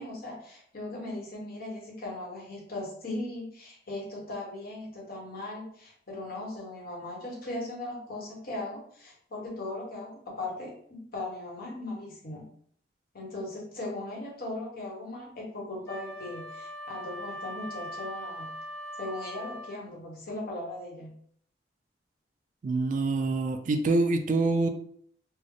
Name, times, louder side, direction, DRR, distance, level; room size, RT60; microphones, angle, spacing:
voice 1, 0.0-12.5 13.1-18.5 19.0-21.1, left 2 dB, 55° left, -2 dB, 1.0 m, -38 dB
Wind instrument woodwind instrument, 15.8-19.8, equal, 15° left, 0.5 m, -40 dB
voice 2, 22.6-24.7, right 3 dB, 45° right, 7 dB, 0.3 m, -25 dB
3.4 x 2.0 x 3.6 m, 0.62 s
head